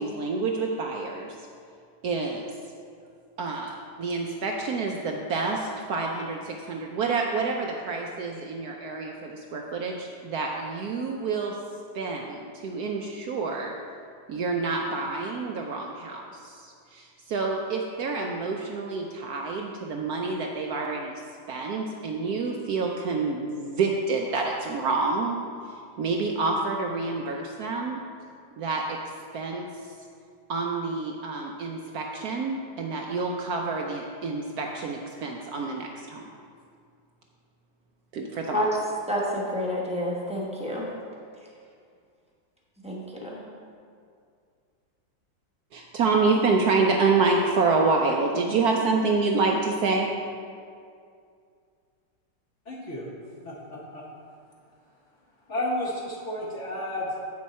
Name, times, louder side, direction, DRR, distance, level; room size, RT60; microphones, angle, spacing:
voice 1, 0.0-1.4 2.0-2.5 3.4-11.6 11.9-13.8 14.3-21.1 21.5-25.4 25.7-28.1 28.6-29.9 30.5-36.2 38.1-38.7 46.0-50.1, right 4 dB, 70° right, 1 dB, 0.9 m, -28 dB
voice 2, 39.1-40.9 42.8-43.4, left 1 dB, 5° right, -4 dB, 0.7 m, -29 dB
voice 3, 52.7-53.1 53.4-54.0 55.5-57.2, left 1 dB, 50° left, -4 dB, 1.0 m, -32 dB
8.0 x 6.3 x 4.2 m, 2.3 s
omnidirectional pair, 2.0 m